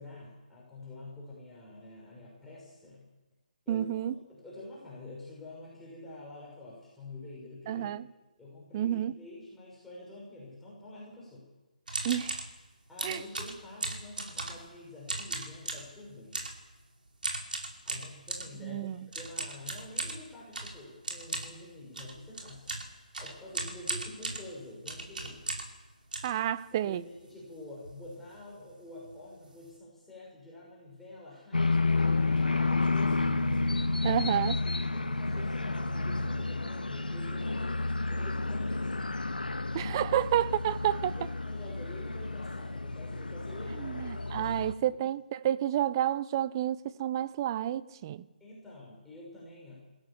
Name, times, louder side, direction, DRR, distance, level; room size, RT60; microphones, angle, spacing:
voice 1, 0.0-3.1 3.7-3.9 4.3-7.9 8.4-11.5 12.9-16.5 17.8-18.9 19.1-25.6 26.8-33.3 34.0-37.7 38.1-39.1 41.1-44.5 48.4-49.9, left 2 dB, 5° left, 6.3 m, -47 dB
voice 2, 3.7-4.1 7.7-8.0 8.7-9.1 12.0-12.4 13.0-13.2 18.6-19.0 26.2-27.0 34.0-34.5 39.7-41.1 43.8-48.2, right 11 dB, 30° right, 0.7 m, -30 dB
sound 1, 11.9-12.5 13.0-14.7 15.0-15.9 16.3-16.6 17.2-18.5 19.1-25.8 26.1-27.0 27.4-27.5 27.7-28.0 28.3-28.5 29.1-29.2 29.4-29.7, right 2 dB, 75° right, 5.3 m, -37 dB
sound 2, 31.5-44.7, left 3 dB, 90° left, 1.7 m, -31 dB
28.0 x 16.0 x 7.3 m
figure-of-eight pair, 150°, 5 cm